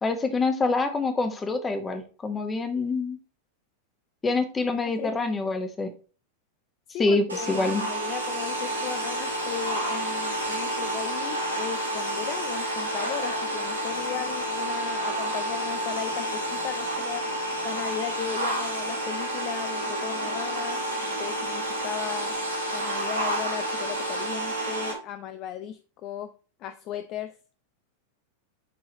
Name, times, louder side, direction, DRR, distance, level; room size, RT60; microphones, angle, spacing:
voice 1, 0.0-3.2 4.2-5.9 7.0-7.8, left 3 dB, 15° left, 7 dB, 1.1 m, -26 dB
voice 2, 5.0-5.4 6.9-17.2 17.6-22.3 22.7-26.3 26.6-27.3, left 10 dB, 35° left, 11 dB, 0.4 m, -36 dB
sound 1, 7.3-24.9, right 1 dB, 80° right, 2.9 m, -30 dB
11.0 x 3.9 x 2.9 m, 0.36 s
figure-of-eight pair, 90°, 0 cm